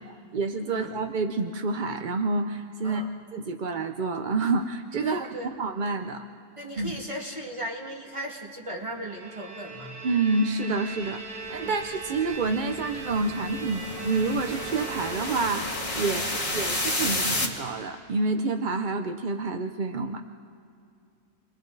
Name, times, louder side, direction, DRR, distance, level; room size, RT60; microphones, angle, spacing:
voice 1, 0.0-3.0 3.3-6.2 6.8-6.9 10.0-20.2, right 3 dB, 50° right, 6 dB, 0.5 m, -28 dB
voice 2, 5.0-5.5 6.6-9.9 11.6-11.8 16.0-16.3, right 1 dB, 20° right, -1 dB, 2.3 m, -37 dB
Bowed string instrument, 8.9-15.9, right 3 dB, 85° right, 3.1 m, -40 dB
sound 1, 11.5-17.5, left 1 dB, 20° left, 2.1 m, -31 dB
30.0 x 22.5 x 4.0 m, 2.5 s
omnidirectional pair, 1.7 m